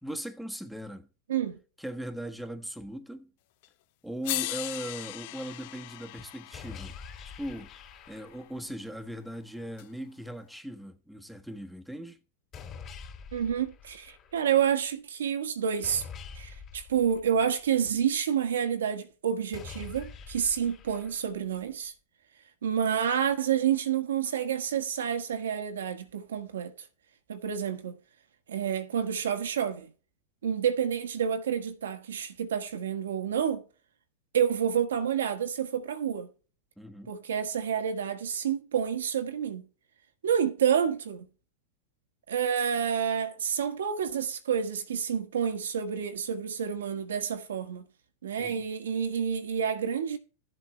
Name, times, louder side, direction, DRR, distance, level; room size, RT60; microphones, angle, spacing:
voice 1, 0.0-1.1 1.8-3.3 4.0-7.0 7.2-7.7 8.1-12.2 36.8-37.1 48.4-48.6, right 1 dB, ahead, 1.4 m, -39 dB
voice 2, 1.3-1.6 13.3-16.0 16.3-21.9 22.6-26.7 27.3-28.0 28.5-29.9 30.4-33.6 34.3-36.3 37.1-39.7 40.2-41.3 42.3-47.8 48.2-50.2, right 8 dB, 85° right, 1.5 m, -29 dB
sound 1, 3.6-3.7 4.2-8.4 9.8-9.9, left 20 dB, 60° left, 0.4 m, -38 dB
sound 2, 6.5-8.6 12.5-14.5 15.8-17.8 19.5-21.5, left 6 dB, 35° left, 3.2 m, -46 dB
14.5 x 7.6 x 3.2 m
hypercardioid pair, 105°, 0 cm